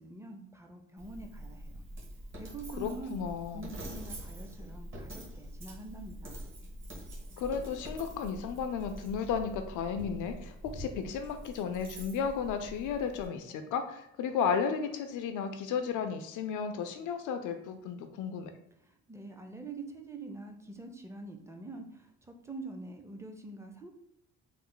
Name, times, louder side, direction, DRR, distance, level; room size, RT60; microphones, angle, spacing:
voice 1, 0.0-1.8 2.3-3.2 3.5-6.5 18.8-23.9, right 2 dB, 10° right, 4 dB, 0.5 m, -45 dB
Coin (dropping), 1.0-13.3, right 1 dB, 40° right, 1.2 m, -45 dB
voice 2, 2.8-3.7 7.4-18.5, left 6 dB, 85° left, 7 dB, 0.5 m, -34 dB
3.1 x 2.0 x 3.7 m, 0.80 s
cardioid pair, 90°, 30 cm